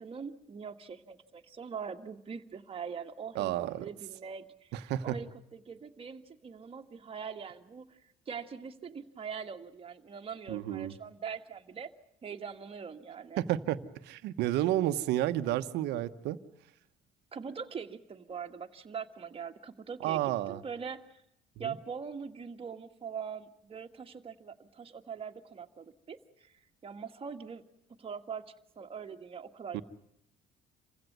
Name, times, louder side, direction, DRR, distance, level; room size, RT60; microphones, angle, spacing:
voice 1, 0.0-8.0 8.3-11.9 12.2-13.4 17.3-21.2 21.6-26.5 26.8-27.6 28.0-28.5 28.8-29.8, right 6 dB, 35° right, 5 dB, 1.8 m, -42 dB
voice 2, 3.3-3.9 4.7-5.2 10.5-10.9 13.4-16.4 20.0-20.6 21.6-21.7 29.7-29.8, right 13 dB, 85° right, 11 dB, 1.2 m, -31 dB
27.5 x 16.0 x 9.3 m, 0.79 s
cardioid pair, 110°, 17 cm